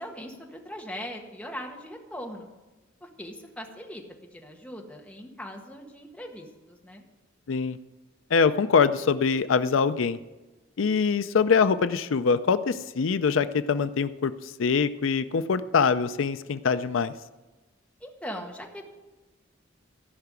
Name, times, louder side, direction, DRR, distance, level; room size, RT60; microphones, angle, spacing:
voice 1, 0.0-2.5 3.0-4.0 4.3-7.0 18.0-18.8, equal, 5° left, 0 dB, 1.6 m, -40 dB
voice 2, 7.5-7.8 8.3-10.2 10.8-17.1, left 5 dB, 85° left, 12 dB, 0.5 m, -24 dB
14.5 x 5.8 x 9.5 m, 1.1 s
head